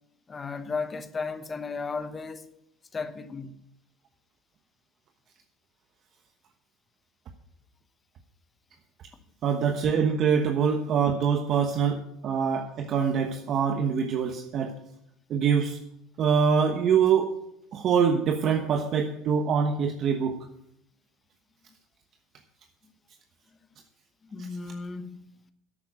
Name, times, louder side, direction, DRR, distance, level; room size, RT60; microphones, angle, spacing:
voice 1, 0.3-2.5 2.9-3.6 24.2-25.3, left 4 dB, 20° left, 1.0 m, -35 dB
voice 2, 9.4-14.7 15.3-15.8 16.2-17.3 17.7-20.4, right 6 dB, 40° right, 1.1 m, -24 dB
11.5 x 9.2 x 6.3 m
supercardioid pair, 135°, 0 cm